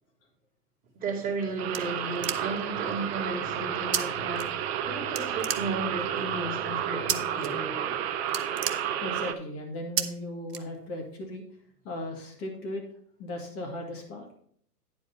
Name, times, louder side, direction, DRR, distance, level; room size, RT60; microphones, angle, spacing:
voice 1, 0.9-8.0, right 3 dB, 15° right, 2.5 m, -34 dB
sound 1, 1.1-2.8 3.9-4.0 4.3-4.9 5.1-6.1 7.1-7.5 7.8-8.0 8.2-9.4 10.0-10.1 10.5-11.1, right 9 dB, 70° right, 0.9 m, -32 dB
sound 2, 1.6-9.3, right 9 dB, 40° right, 0.7 m, -31 dB
sound 3, 2.1-7.3, left 3 dB, 65° left, 2.3 m, -49 dB
voice 2, 9.0-11.4 11.8-12.8 13.2-14.3, left 1 dB, 30° left, 2.3 m, -37 dB
9.7 x 4.9 x 5.5 m
figure-of-eight pair, 115°, 49 cm